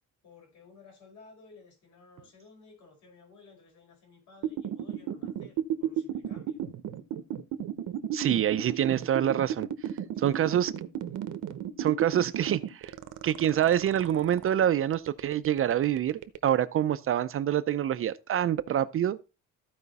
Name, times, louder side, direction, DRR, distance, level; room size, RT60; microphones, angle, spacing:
voice 1, 0.2-6.7 10.0-10.4, left 4 dB, 65° left, 5.0 m, -55 dB
sound 1, 4.4-14.5 14.9-16.6, right 10 dB, 70° right, 0.9 m, -33 dB
voice 2, 8.1-9.7 10.2-10.7 11.8-12.9 13.2-19.2, right 10 dB, 45° right, 0.5 m, -26 dB
14.5 x 5.0 x 4.1 m
cardioid pair, 175°, 32 cm